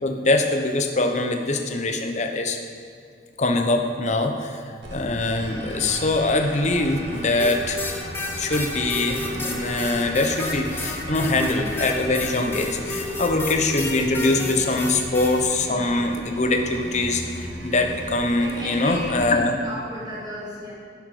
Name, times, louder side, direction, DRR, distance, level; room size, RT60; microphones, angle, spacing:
voice 1, 0.0-2.6 3.4-4.6 4.9-8.0 8.4-19.5, left 2 dB, 40° left, 3 dB, 0.9 m, -23 dB
sound 1, 4.8-19.2, right 1 dB, 80° right, 2.4 m, -38 dB
sound 2, 5.1-15.7, equal, 65° right, 2.2 m, -40 dB
sound 3, 7.4-15.4, left 2 dB, 10° left, 1.0 m, -31 dB
voice 2, 18.4-20.7, left 1 dB, 25° right, -7 dB, 3.2 m, -34 dB
11.5 x 10.5 x 5.0 m, 2.2 s
head